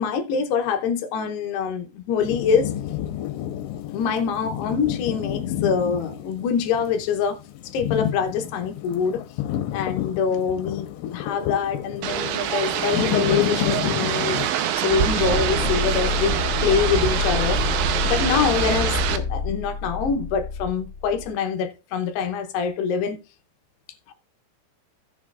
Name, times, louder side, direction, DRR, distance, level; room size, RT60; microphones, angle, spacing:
voice 1, 0.0-2.7 3.9-9.2 9.7-14.4 14.8-16.4 16.6-17.6 18.0-23.2, left 6 dB, 75° left, 2.7 m, -25 dB
sound 1, 2.2-14.5, left 11 dB, 90° left, 3.1 m, -30 dB
sound 2, 12.0-19.2, right 9 dB, 85° right, 3.1 m, -25 dB
sound 3, 15.3-21.3, left 4 dB, 35° left, 2.2 m, -28 dB
17.5 x 6.1 x 2.4 m
omnidirectional pair, 5.3 m